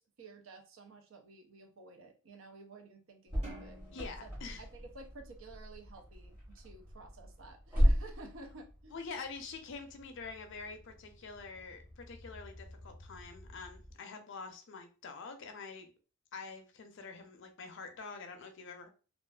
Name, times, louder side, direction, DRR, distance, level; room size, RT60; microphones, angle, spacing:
voice 1, 0.0-3.8 4.2-4.3 4.6-9.0, right 3 dB, 65° right, 0.5 m, -52 dB
sound 1, 3.3-14.0, equal, 10° right, 0.9 m, -37 dB
sound 2, 3.4-6.0, right 1 dB, 30° right, 1.3 m, -54 dB
voice 2, 3.9-4.6 8.9-15.9 16.3-18.9, left 4 dB, 60° left, 0.5 m, -46 dB
2.4 x 2.4 x 2.2 m
head